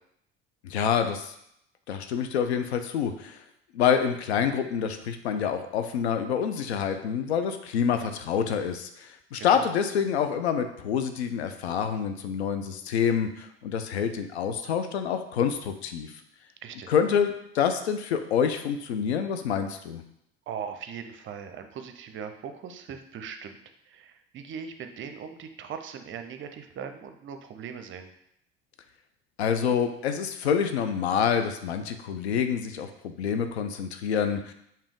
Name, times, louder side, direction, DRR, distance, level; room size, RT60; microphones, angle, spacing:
voice 1, 0.6-1.3 1.9-3.4 3.7-16.1 16.9-20.0 29.4-34.5, left 7 dB, 85° left, 8 dB, 0.5 m, -27 dB
voice 2, 16.6-16.9 20.5-23.6 23.8-28.1, right 7 dB, 40° right, 7 dB, 0.6 m, -39 dB
5.0 x 2.8 x 3.7 m, 0.75 s
hypercardioid pair, 70°, 32 cm